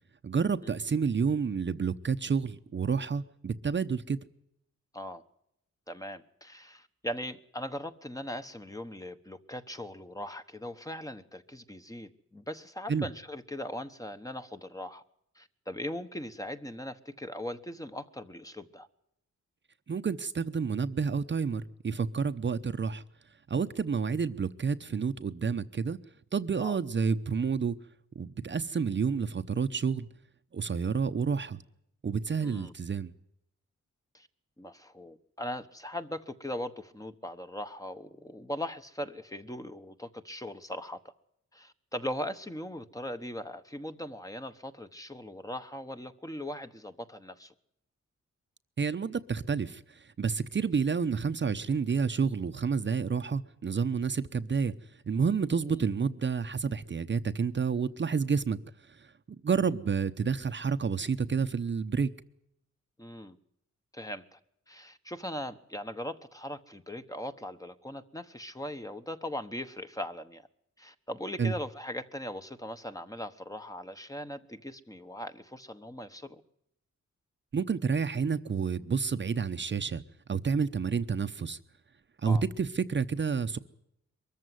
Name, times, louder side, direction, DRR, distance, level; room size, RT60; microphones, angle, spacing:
voice 1, 0.2-4.2 12.9-13.1 19.9-23.0 23.5-26.0 26.3-27.7 28.1-30.1 30.5-31.6 32.0-33.1 48.8-54.7 55.1-58.6 58.9-59.1 59.4-62.1 71.4-71.5 77.5-80.0 80.3-81.6 82.2-83.6, right 5 dB, 40° right, 0.8 m, -29 dB
voice 2, 5.9-15.0 15.4-18.9 26.6-26.8 32.4-32.7 34.1-34.3 34.6-41.0 41.5-47.5 55.6-55.8 63.0-63.4 63.9-64.4 64.7-70.4 70.8-76.4 82.2-82.4, left 1 dB, 10° left, 1.1 m, -39 dB
23.0 x 14.0 x 9.3 m
wide cardioid pair, 125°, 29 cm